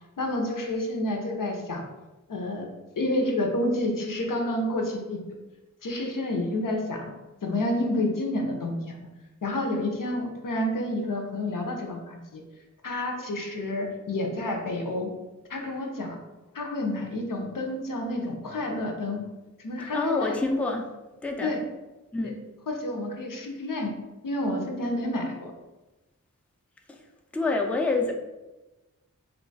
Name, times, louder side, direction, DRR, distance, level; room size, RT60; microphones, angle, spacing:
voice 1, 0.2-1.8 2.3-2.7 3.0-5.2 5.8-7.1 7.4-9.1 9.4-12.4 12.8-15.2 15.5-16.2 16.5-19.3 19.6-20.4 21.4-21.6 22.2-22.3 22.7-23.9 24.2-25.5, left 1 dB, 85° left, 2 dB, 0.6 m, -29 dB
voice 2, 19.9-20.9 21.2-21.5 22.1-22.4 26.9-27.0 27.3-28.1, left 3 dB, 5° left, 2 dB, 0.4 m, -27 dB
2.9 x 2.2 x 3.9 m, 1.1 s
wide cardioid pair, 45°, 32 cm